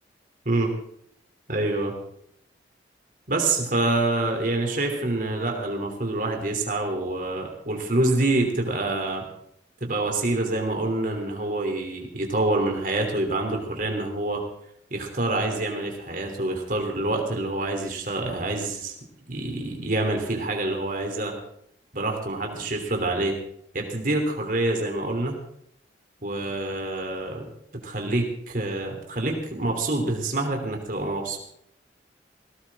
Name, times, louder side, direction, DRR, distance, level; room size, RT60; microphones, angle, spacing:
voice 1, 1.5-1.9 3.3-9.3 9.8-14.4 14.9-19.0 19.3-21.3 21.9-23.4 23.7-25.4 26.2-27.5 27.8-31.4, right 2 dB, 50° right, 2 dB, 3.2 m, -26 dB
18.0 x 17.5 x 3.7 m, 0.71 s
head